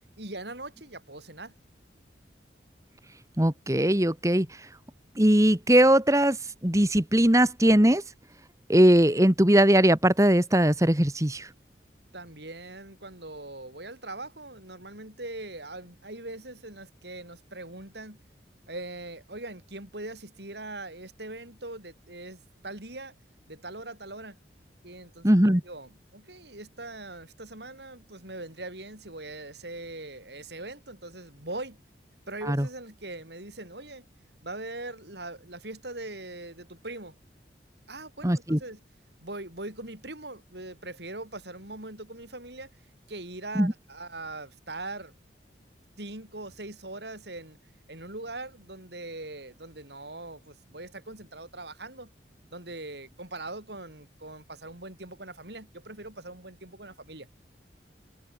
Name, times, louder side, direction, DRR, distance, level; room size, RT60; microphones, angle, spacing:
voice 1, 0.2-1.6 12.1-18.2 18.7-23.2 23.5-24.4 24.8-31.8 32.3-34.1 34.4-37.2 37.9-38.8 39.2-42.7 43.1-45.1 46.0-47.6 47.9-52.1 52.5-57.3, right 2 dB, 70° right, 7.5 m, -41 dB
voice 2, 3.4-4.5 5.1-6.4 6.6-8.0 8.7-11.5 25.2-25.6 32.5-32.7 38.2-38.6 43.5-43.7, right 1 dB, 15° right, 1.7 m, -20 dB
head